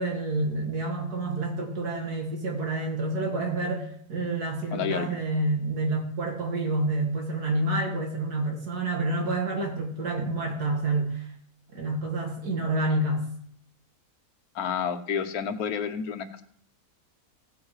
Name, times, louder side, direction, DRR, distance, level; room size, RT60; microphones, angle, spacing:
voice 1, 0.0-11.3 11.7-13.2, right 2 dB, 85° right, 1 dB, 2.8 m, -28 dB
voice 2, 4.7-5.1 14.5-16.4, left 7 dB, 75° left, 9 dB, 1.4 m, -30 dB
16.0 x 7.2 x 4.8 m, 0.64 s
omnidirectional pair, 1.6 m